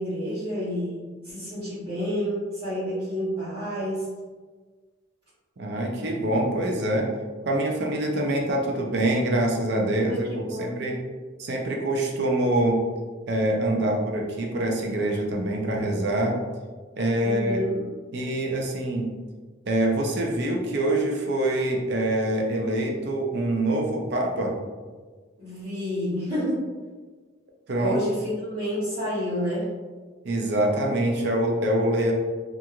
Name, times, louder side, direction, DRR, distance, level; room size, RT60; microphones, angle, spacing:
voice 1, 0.0-4.1 10.1-10.8 17.2-17.8 18.5-18.7 25.4-26.7 27.8-29.7, equal, 25° right, -16 dB, 1.0 m, -29 dB
voice 2, 5.6-7.1 7.4-11.0 11.4-12.8 13.3-16.4 17.0-17.6 18.1-19.1 19.7-24.6 27.7-28.0 30.2-32.1, right 1 dB, 55° right, 0 dB, 0.5 m, -25 dB
2.9 x 2.4 x 2.4 m, 1.4 s
head